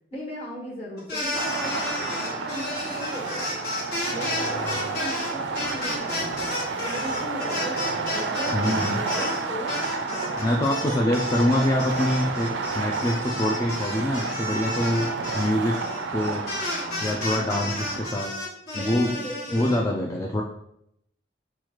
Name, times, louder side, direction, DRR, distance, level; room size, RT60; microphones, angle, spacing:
voice 1, 0.1-3.6 4.1-6.6 6.8-11.2 16.6-17.2 18.7-19.9, equal, 35° left, -4 dB, 1.4 m, -38 dB
sound 1, 1.0-9.4 9.7-19.8, left 2 dB, 60° left, 1.4 m, -32 dB
sound 2, 1.3-18.1, right 4 dB, 80° right, 0.4 m, -31 dB
voice 2, 8.5-9.0 10.4-12.5 12.7-15.1 15.3-15.8 16.1-16.4 17.0-18.3 18.7-19.1 19.5-20.4, left 1 dB, 20° left, 0 dB, 0.3 m, -24 dB
6.0 x 2.3 x 2.9 m, 0.76 s
head